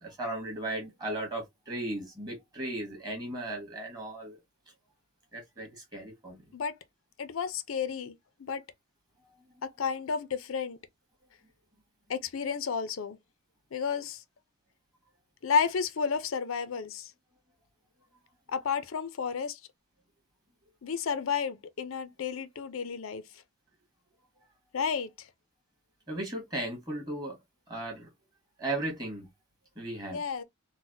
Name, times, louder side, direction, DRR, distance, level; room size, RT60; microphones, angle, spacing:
voice 1, 0.0-4.4 5.3-6.4 26.1-27.4 27.7-28.1 28.6-29.3 29.7-30.2, right 1 dB, 20° right, 1.5 m, -36 dB
voice 2, 7.2-8.1 8.4-8.6 9.8-10.8 12.1-13.2 13.7-14.2 15.4-17.1 18.5-19.6 20.8-23.2 24.7-25.1 30.1-30.4, left 6 dB, 85° left, 0.5 m, -31 dB
3.9 x 2.1 x 2.6 m
head